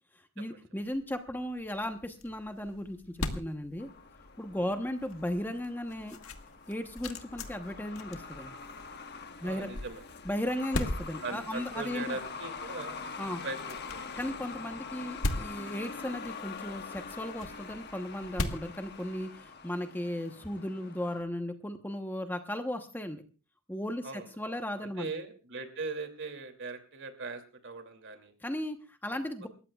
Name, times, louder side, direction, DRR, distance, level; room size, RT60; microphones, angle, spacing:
voice 1, 0.4-3.9 4.4-6.2 6.7-8.5 9.4-9.7 10.2-12.2 13.2-13.4 14.2-23.2 23.7-25.1 28.4-29.5, left 1 dB, 10° left, 6 dB, 1.0 m, -36 dB
sound 1, 0.9-19.6, left 1 dB, 80° left, 1.6 m, -41 dB
Truck, 3.8-21.2, left 5 dB, 50° left, 1.5 m, -44 dB
voice 2, 9.4-10.0 11.2-13.0 13.4-14.0 24.0-24.5 24.8-28.3, right 3 dB, 60° right, 7 dB, 2.7 m, -40 dB
28.5 x 14.5 x 2.4 m, 0.35 s
head